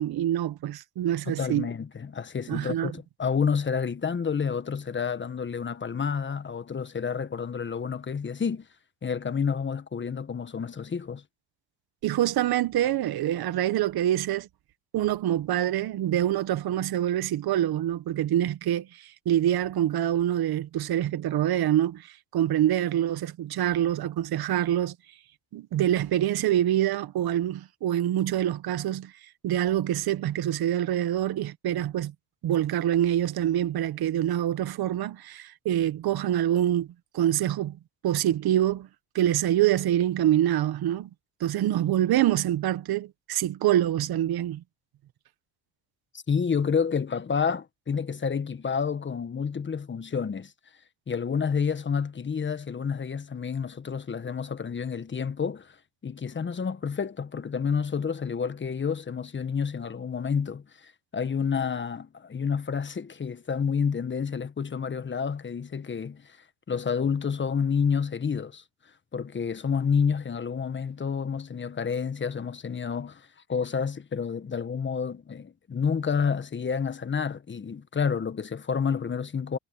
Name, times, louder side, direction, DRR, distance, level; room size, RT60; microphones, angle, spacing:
voice 1, 0.0-1.7 2.5-2.9 12.0-14.5 14.9-25.0 25.5-29.1 29.4-32.1 32.4-36.9 37.1-37.8 38.0-38.9 39.2-41.1 41.4-44.6, right 12 dB, 60° right, 1.7 m, -25 dB
voice 2, 1.3-8.7 9.0-11.2 46.3-50.5 51.1-55.8 56.0-66.4 66.7-68.6 69.1-79.6, left 6 dB, 25° left, 1.4 m, -29 dB
supercardioid pair, 95°, 43 cm